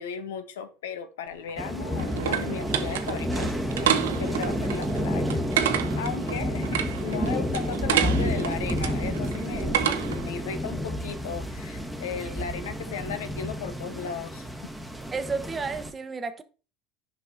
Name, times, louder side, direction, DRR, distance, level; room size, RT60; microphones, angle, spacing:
voice 1, 0.0-14.5, left 6 dB, 80° left, 0.8 m, -36 dB
sound 1, 1.3-10.3, right 10 dB, 80° right, 0.7 m, -30 dB
sound 2, 1.6-15.9, equal, ahead, 1.3 m, -30 dB
voice 2, 15.1-16.4, right 4 dB, 25° right, 0.9 m, -32 dB
10.0 x 5.3 x 2.7 m
hypercardioid pair, 80°, 0 cm